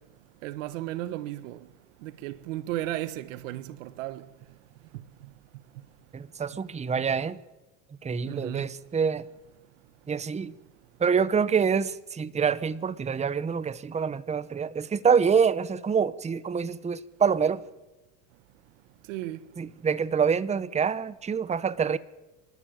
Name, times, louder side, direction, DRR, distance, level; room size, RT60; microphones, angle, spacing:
voice 1, 0.4-1.6 2.0-4.2 8.3-8.7 19.1-19.4, right 15 dB, 90° right, 1.3 m, -34 dB
voice 2, 6.1-7.4 8.0-9.2 10.1-10.5 11.0-17.6 19.6-22.0, right 6 dB, 20° right, 0.9 m, -26 dB
28.0 x 12.5 x 9.0 m
supercardioid pair, 105°, 37 cm